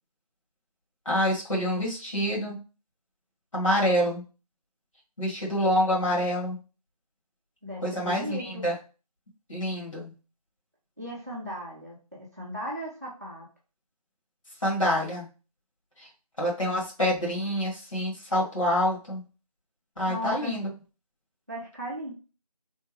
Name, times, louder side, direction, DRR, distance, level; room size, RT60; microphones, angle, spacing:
voice 1, 1.1-2.6 3.5-4.2 5.2-6.6 7.8-8.4 8.6-8.7 9.5-10.1 14.6-15.3 16.0-16.1 16.4-19.2 20.0-20.7, equal, 55° left, -4 dB, 1.7 m, -26 dB
voice 2, 7.6-8.6 11.0-13.4 20.1-20.5 21.5-22.1, equal, 25° right, -4 dB, 0.7 m, -36 dB
3.4 x 2.1 x 3.2 m, 0.33 s
figure-of-eight pair, 170°, 20 cm